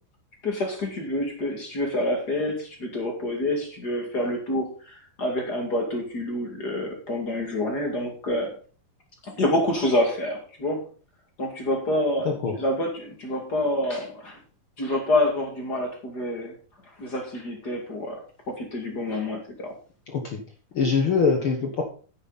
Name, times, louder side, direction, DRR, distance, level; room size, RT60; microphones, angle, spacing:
voice 1, 0.4-8.5 9.2-10.8 11.4-14.4 14.8-16.5 17.0-18.2 18.5-19.7, left 1 dB, 30° left, 2 dB, 2.2 m, -27 dB
voice 2, 20.1-20.4 20.7-21.8, left 5 dB, 75° left, 3 dB, 1.2 m, -23 dB
10.0 x 9.6 x 4.1 m, 0.40 s
omnidirectional pair, 4.3 m